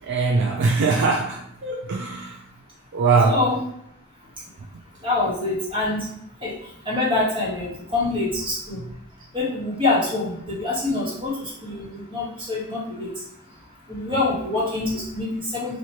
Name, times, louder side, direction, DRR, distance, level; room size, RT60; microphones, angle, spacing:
voice 1, 0.0-2.4 2.9-3.4 8.8-8.9, right 4 dB, 60° right, 0 dB, 0.4 m, -22 dB
voice 2, 3.2-3.6 5.0-6.1 6.4-6.5 6.8-8.8 9.3-13.1 13.9-15.8, left 2 dB, 25° right, -6 dB, 1.5 m, -25 dB
3.0 x 2.7 x 4.3 m, 0.76 s
head